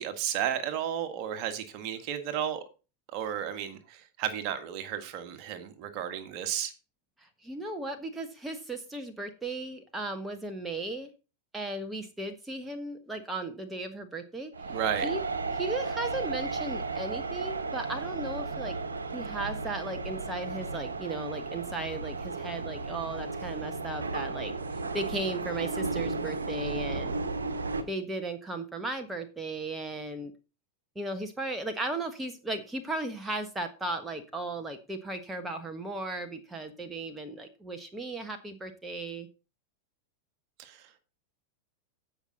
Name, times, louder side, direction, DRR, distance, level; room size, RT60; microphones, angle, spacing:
voice 1, 0.0-2.6 3.1-3.8 4.2-6.7 14.7-15.1, right 9 dB, 40° right, 1.7 m, -32 dB
voice 2, 7.2-11.1 11.5-14.8 15.0-15.2 15.5-18.8 19.1-24.5 24.9-27.1 27.9-30.3 30.9-39.3, right 2 dB, 10° right, 1.3 m, -36 dB
sound 1, 14.5-27.8, right 3 dB, 70° right, 1.3 m, -34 dB
16.0 x 5.8 x 3.9 m
figure-of-eight pair, 90°, 0 cm